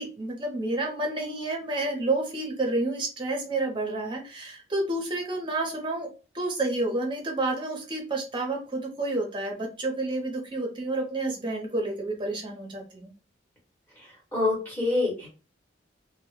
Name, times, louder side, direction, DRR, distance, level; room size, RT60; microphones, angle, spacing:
voice 1, 0.0-6.1 6.3-13.1, right 2 dB, 25° right, 1 dB, 0.6 m, -30 dB
voice 2, 14.3-15.3, left 2 dB, 10° left, -3 dB, 1.0 m, -26 dB
2.1 x 2.0 x 3.0 m, 0.34 s
head